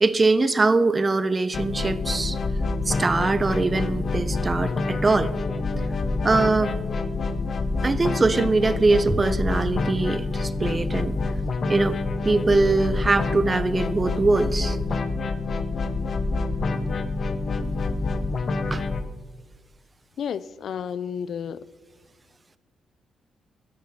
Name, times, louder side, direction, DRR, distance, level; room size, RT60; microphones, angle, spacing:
voice 1, 0.0-2.4 2.9-5.3 6.2-6.7 7.8-11.1 11.7-12.0 12.2-14.8 18.7-18.8, right 3 dB, 30° right, 0.6 m, -22 dB
sound 1, 1.5-19.0, left 3 dB, 50° left, 0.9 m, -27 dB
voice 2, 20.2-21.6, left 8 dB, 65° left, 0.4 m, -31 dB
12.0 x 10.5 x 4.2 m
cardioid pair, 85°, 0 cm